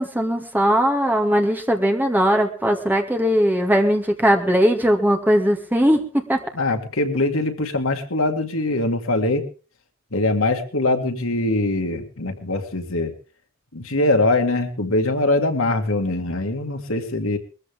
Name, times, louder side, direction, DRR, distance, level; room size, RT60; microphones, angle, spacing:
voice 1, 0.0-6.4, equal, 10° right, 2 dB, 2.3 m, -19 dB
voice 2, 6.5-9.5 10.1-13.1 13.7-17.4, left 2 dB, 75° left, 5 dB, 2.2 m, -22 dB
21.5 x 14.5 x 3.7 m, 0.36 s
head